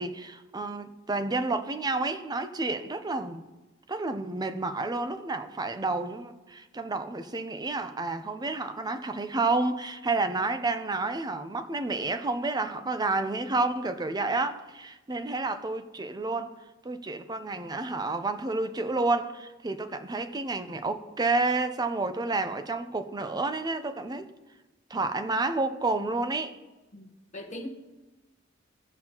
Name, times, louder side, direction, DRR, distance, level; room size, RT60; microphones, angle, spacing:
voice 1, 0.0-3.4 3.9-16.6 16.8-24.3 24.9-26.5, right 3 dB, 20° right, 0.5 m, -30 dB
voice 2, 26.9-27.7, left 1 dB, 35° left, 1.0 m, -41 dB
18.0 x 6.1 x 2.9 m
head